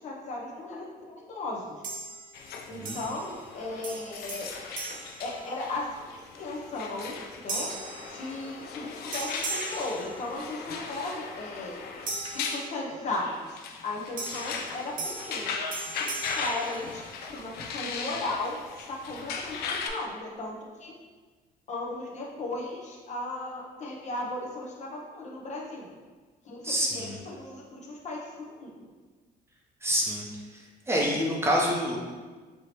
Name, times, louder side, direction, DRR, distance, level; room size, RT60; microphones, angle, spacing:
voice 1, 0.0-1.6 2.7-4.5 5.2-7.7 8.1-11.8 12.3-15.6 15.9-17.0 17.3-20.9 21.7-25.9 26.4-28.9, left 2 dB, 45° left, -2 dB, 0.8 m, -36 dB
sound 1, 1.8-2.5 2.8-3.5 3.8-6.0 6.5-6.8 7.5-8.8 9.1-10.7 12.1-13.2 14.2-17.4, right 3 dB, 55° right, 0.8 m, -39 dB
sound 2, 2.3-19.9, left 5 dB, 70° left, 0.5 m, -38 dB
voice 2, 26.6-27.2 29.8-30.2 30.5-32.0, equal, 15° right, -3 dB, 0.7 m, -27 dB
4.7 x 2.8 x 3.0 m, 1.4 s
cardioid pair, 110°, 17 cm